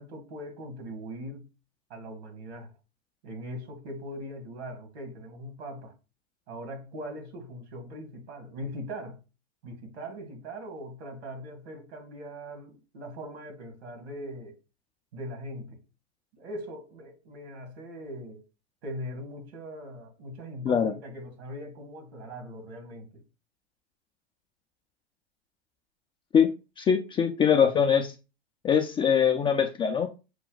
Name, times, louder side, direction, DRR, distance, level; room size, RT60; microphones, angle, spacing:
voice 1, 0.0-1.5 1.9-2.7 3.2-5.9 6.5-9.2 9.6-14.5 15.1-15.8 16.3-18.4 18.8-23.2, equal, 70° right, 1.8 m, -40 dB
voice 2, 26.8-28.1 28.6-30.1, left 7 dB, 15° left, 0.3 m, -22 dB
6.0 x 2.2 x 3.8 m
hypercardioid pair, 100°, 33 cm